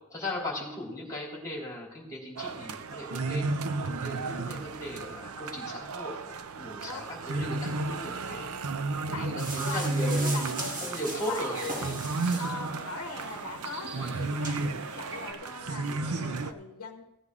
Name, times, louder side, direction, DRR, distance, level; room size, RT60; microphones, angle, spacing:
voice 1, 0.1-3.5 3.8-8.5 9.0-10.4 10.8-11.9 13.9-14.3 15.8-16.4, left 1 dB, 15° left, -3 dB, 3.1 m, -38 dB
sound 1, 2.4-16.5, right 3 dB, 80° right, 0.6 m, -33 dB
voice 2, 9.1-10.9 11.3-12.0 12.4-17.0, left 4 dB, 90° left, 5 dB, 0.9 m, -41 dB
sound 2, 9.4-12.7 13.2-13.3 13.9-14.0 14.4-14.6, right 2 dB, 35° right, 1.5 m, -38 dB
sound 3, 10.0-15.3, right 2 dB, 55° right, 1.4 m, -45 dB
16.0 x 9.5 x 3.6 m, 0.93 s
head